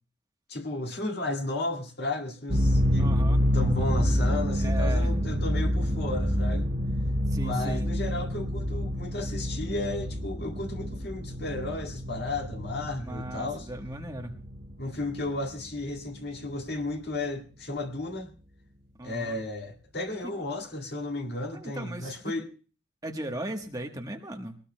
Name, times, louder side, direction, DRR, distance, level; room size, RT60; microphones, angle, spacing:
voice 1, 0.5-3.3 3.5-6.7 7.4-13.7 14.8-18.3 19.0-22.5, left 2 dB, 50° left, 1.9 m, -33 dB
sound 1, 2.5-15.8, equal, 35° right, 3.2 m, -28 dB
voice 2, 3.0-3.4 4.6-5.2 7.3-7.9 13.0-14.3 19.0-19.4 21.5-22.3 23.0-24.6, right 1 dB, 15° right, 1.1 m, -37 dB
21.5 x 19.0 x 2.2 m
head